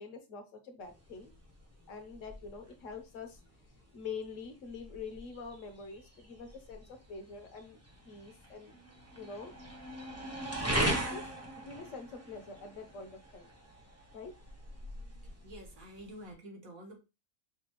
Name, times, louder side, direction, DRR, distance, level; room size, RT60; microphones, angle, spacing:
voice 1, 0.0-1.3 1.9-3.4 3.9-7.8 8.0-8.7 9.1-9.5 11.1-11.3 11.6-13.5 14.1-14.3, left 5 dB, 65° left, 4 dB, 1.2 m, -45 dB
sound 1, 0.8-16.3, right 1 dB, 15° right, 0.6 m, -40 dB
voice 2, 15.4-17.0, equal, 75° right, 1 dB, 1.7 m, -48 dB
5.9 x 2.3 x 3.0 m, 0.28 s
omnidirectional pair, 1.5 m